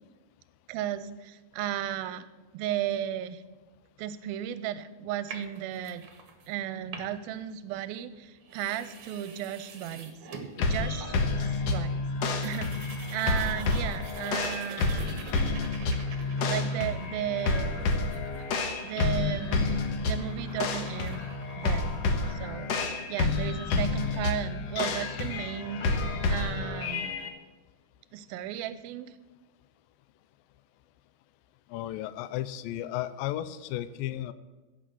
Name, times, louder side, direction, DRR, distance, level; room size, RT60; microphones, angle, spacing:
voice 1, 0.7-2.2 2.5-3.4 4.0-6.0 6.5-10.2 10.7-12.0 12.4-15.1 16.5-17.9 18.8-21.3 21.6-21.9 22.3-22.8 23.1-26.0 26.3-27.1 28.1-29.1, right 11 dB, 80° right, 13 dB, 2.3 m, -35 dB
sound 1, 5.3-6.5 6.8-7.4 8.1-8.2 8.4-11.4 11.7-11.8 12.0-22.3, right 5 dB, 60° right, 1.5 m, -47 dB
sound 2, 10.6-27.3, left 3 dB, 70° left, 1.5 m, -29 dB
voice 2, 31.7-34.3, left 13 dB, 90° left, 13 dB, 2.0 m, -34 dB
16.5 x 6.3 x 7.8 m, 1.2 s
omnidirectional pair, 4.7 m